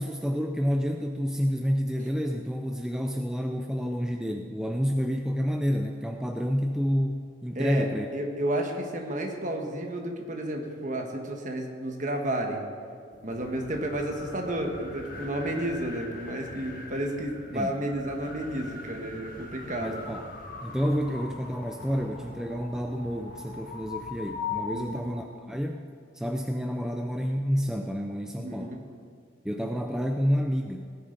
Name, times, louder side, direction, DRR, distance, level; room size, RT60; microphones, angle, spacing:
voice 1, 0.0-8.1 17.5-17.8 19.8-20.3 20.6-25.9 26.1-28.7 29.4-30.9, equal, 5° right, 3 dB, 0.4 m, -29 dB
voice 2, 7.5-12.6 13.2-20.1 24.7-25.0 28.4-28.8, right 1 dB, 40° right, 2 dB, 1.4 m, -31 dB
sound 1, 13.1-25.3, left 4 dB, 45° left, 1.4 m, -41 dB
17.5 x 9.9 x 4.0 m, 2.3 s
head